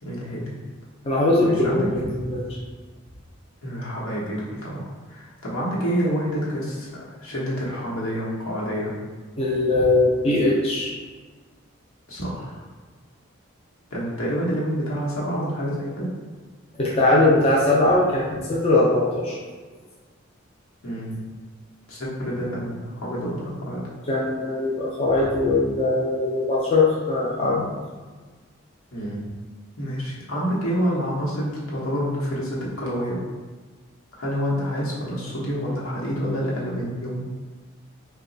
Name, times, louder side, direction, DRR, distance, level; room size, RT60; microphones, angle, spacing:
voice 1, 0.0-0.5 1.4-1.9 3.6-8.9 12.1-12.6 13.9-16.1 20.8-21.2 21.9-23.8 28.9-29.3 29.8-33.2 34.2-37.3, equal, 80° left, -6 dB, 1.0 m, -28 dB
voice 2, 1.0-2.4 9.4-10.9 16.8-19.4 24.1-27.7, left 2 dB, 30° left, -5 dB, 0.4 m, -20 dB
3.0 x 2.2 x 3.8 m, 1.4 s
head